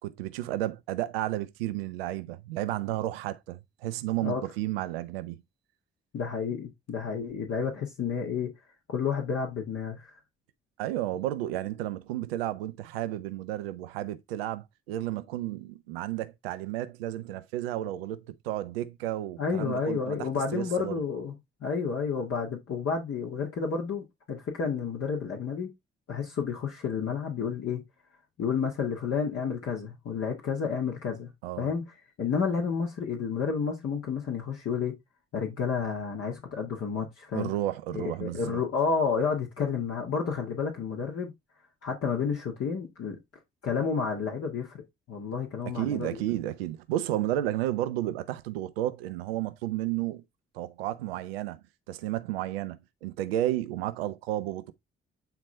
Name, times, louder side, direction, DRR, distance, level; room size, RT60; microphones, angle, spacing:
voice 1, 0.0-5.4 10.8-21.0 31.4-31.8 37.3-38.6 45.7-50.2 50.5-54.7, right 14 dB, 75° right, 0.7 m, -32 dB
voice 2, 6.1-8.5 8.9-10.1 19.4-21.3 21.6-25.7 26.1-27.8 28.4-31.3 31.6-31.9 32.2-35.0 35.3-37.5 37.9-41.3 41.8-43.2 43.6-46.2, left 6 dB, 50° left, 1.8 m, -30 dB
9.2 x 4.2 x 3.2 m
figure-of-eight pair, 40°, 30 cm